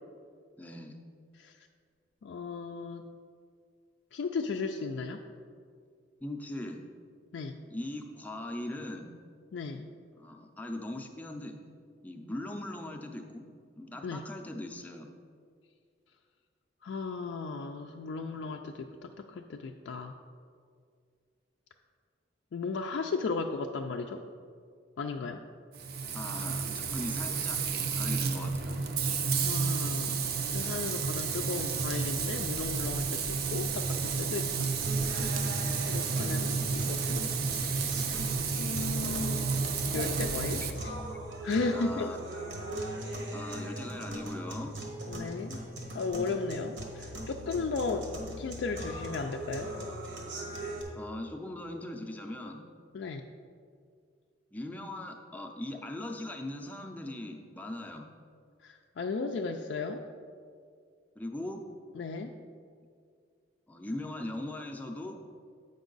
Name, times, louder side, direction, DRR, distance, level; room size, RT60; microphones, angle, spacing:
voice 1, 0.6-1.0 6.2-6.8 7.7-9.1 10.2-11.6 12.0-15.1 26.1-27.6 27.9-28.8 40.6-40.7 41.7-42.2 43.3-44.8 50.9-52.6 54.5-58.1 61.2-61.6 63.7-65.1, left 1 dB, 10° left, 2 dB, 0.5 m, -40 dB
voice 2, 2.2-3.1 4.1-5.2 7.3-7.6 9.5-9.9 14.0-14.3 16.8-20.1 22.5-24.2 25.0-25.4 29.4-30.2 30.5-34.7 35.9-37.2 37.8-38.1 38.6-39.5 39.9-40.9 41.4-42.1 45.1-45.6 45.9-48.1 48.4-49.7 52.9-53.2 58.6-60.1 62.0-62.3, left 4 dB, 70° left, 3 dB, 0.3 m, -35 dB
Frying (food), 25.7-40.7, right 5 dB, 55° right, 0.5 m, -31 dB
sound 1, 34.8-50.8, right 1 dB, 70° right, 1.2 m, -40 dB
8.0 x 5.3 x 3.9 m, 2.2 s
head